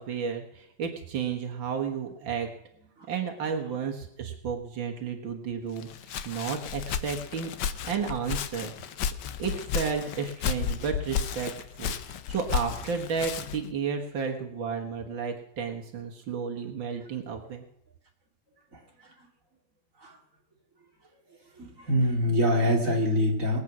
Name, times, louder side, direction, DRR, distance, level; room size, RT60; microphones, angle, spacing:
voice 1, 0.0-2.5 3.1-5.9 6.2-7.5 7.8-8.7 9.4-11.5 11.8-17.6, right 6 dB, 85° right, 2 dB, 2.2 m, -32 dB
Walk footsteps, 5.8-13.7, left 8 dB, 70° left, 1.4 m, -33 dB
voice 2, 21.6-23.6, equal, 45° right, 1 dB, 2.9 m, -24 dB
21.0 x 8.5 x 6.1 m, 0.78 s
omnidirectional pair, 2.0 m